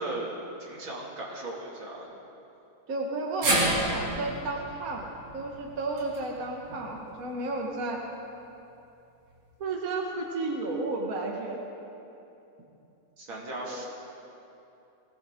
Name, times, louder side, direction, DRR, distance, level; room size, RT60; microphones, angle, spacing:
voice 1, 0.0-2.1 13.2-13.9, right 2 dB, 70° right, -3 dB, 3.2 m, -37 dB
voice 2, 2.9-5.1 5.3-8.1 9.6-11.6 13.5-13.8, right 2 dB, 45° right, 0 dB, 1.7 m, -32 dB
sound 1, 3.4-7.7 8.0-8.1 9.3-9.4, right 1 dB, 90° right, 3.8 m, -31 dB
21.5 x 17.5 x 3.7 m, 2.8 s
omnidirectional pair, 2.2 m